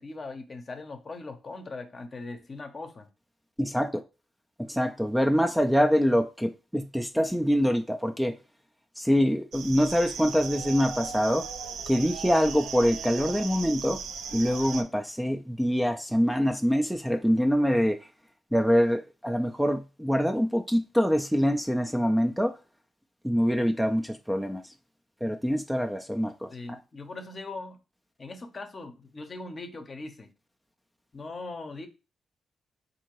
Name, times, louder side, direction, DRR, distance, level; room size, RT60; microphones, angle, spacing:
voice 1, 0.0-3.1 26.5-27.8 28.2-30.3 31.1-31.9, left 3 dB, 40° left, 0.7 m, -40 dB
voice 2, 3.6-4.0 4.7-8.3 9.0-11.4 11.9-14.0 14.3-18.0 18.5-22.5 23.2-24.6 25.2-26.8, equal, 5° right, 0.4 m, -25 dB
sound 1, 9.5-14.8, right 6 dB, 85° right, 0.4 m, -37 dB
3.6 x 2.7 x 3.0 m
cardioid pair, 70°, 0 cm